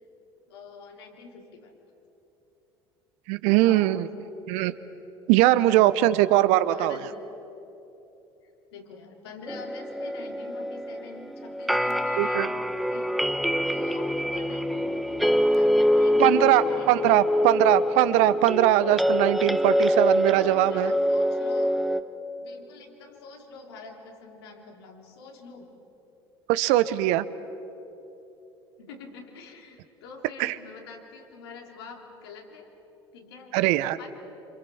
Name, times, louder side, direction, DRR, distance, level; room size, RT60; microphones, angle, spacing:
voice 1, 0.5-1.7 3.5-4.1 5.7-6.1 6.7-7.0 8.4-13.2 13.6-17.5 20.3-21.8 22.4-25.7 28.8-32.7 33.1-33.5 34.0-34.1, left 3 dB, 75° left, 2 dB, 3.6 m, -45 dB
voice 2, 3.3-4.1 4.5-4.7 5.3-7.0 12.2-12.5 16.2-20.9 26.5-27.2 30.4-30.5 33.5-34.0, right 15 dB, 60° right, 14 dB, 1.0 m, -21 dB
sound 1, 9.5-22.0, equal, ahead, 1.3 m, -25 dB
27.5 x 27.0 x 7.1 m, 3.0 s
hypercardioid pair, 65°, 13 cm